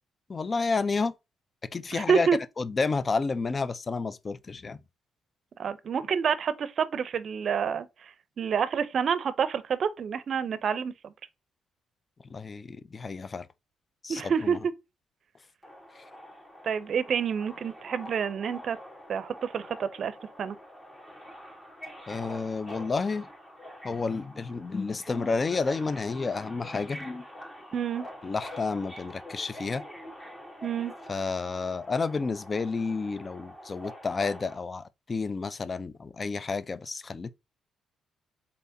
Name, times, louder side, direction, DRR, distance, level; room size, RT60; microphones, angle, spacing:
voice 1, 0.3-1.1 1.7-2.3 2.6-4.8 12.3-13.5 14.0-14.6 16.0-16.1 22.1-23.3 23.8-27.3 28.2-29.8 31.1-37.3, left 4 dB, 30° left, 0.4 m, -30 dB
voice 2, 1.9-2.4 5.6-8.1 8.4-11.1 14.1-14.6 16.6-18.8 19.1-20.6 27.7-28.1 30.6-30.9, right 7 dB, 55° right, 0.5 m, -28 dB
Subway metro underground, 15.6-34.6, equal, 15° left, 1.4 m, -46 dB
4.0 x 3.4 x 2.6 m
cardioid pair, 90°, 0 cm